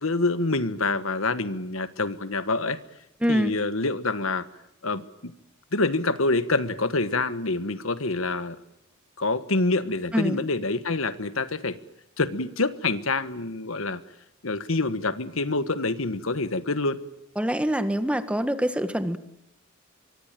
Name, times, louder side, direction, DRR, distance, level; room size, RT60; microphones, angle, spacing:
voice 1, 0.0-2.8 3.3-4.5 4.8-5.3 5.7-8.6 9.2-11.8 12.2-14.0 14.4-17.0, left 3 dB, 75° left, 12 dB, 1.5 m, -26 dB
voice 2, 3.2-3.5 10.1-10.4 17.4-19.2, equal, 5° right, 10 dB, 1.5 m, -25 dB
24.5 x 24.0 x 9.2 m, 0.85 s
head